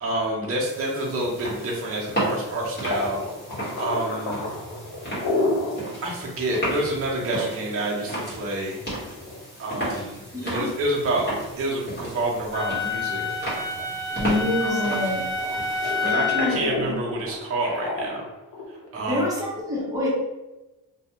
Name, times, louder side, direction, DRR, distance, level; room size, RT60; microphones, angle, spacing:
voice 1, 0.0-3.2 3.8-4.4 6.0-8.8 9.6-13.2 14.6-15.0 16.0-18.2 18.9-19.2, right 2 dB, 35° right, -3 dB, 0.7 m, -28 dB
sound 1, 0.6-16.1, right 1 dB, 25° left, 1.2 m, -34 dB
sound 2, 2.9-5.8 6.2-6.3 6.7-6.8 7.5-9.8 10.3-10.7 11.2-11.3 11.9-12.8 13.1-15.0 15.4-18.9, left 2 dB, 75° left, 0.9 m, -30 dB
voice 2, 10.3-10.7 14.2-15.2 16.0-16.9 19.1-20.1, left 2 dB, 10° right, -6 dB, 0.9 m, -27 dB
Wind instrument woodwind instrument, 12.5-16.7, left 3 dB, 50° left, 0.9 m, -28 dB
2.4 x 2.3 x 2.9 m, 1.0 s
cardioid pair, 105°, 38 cm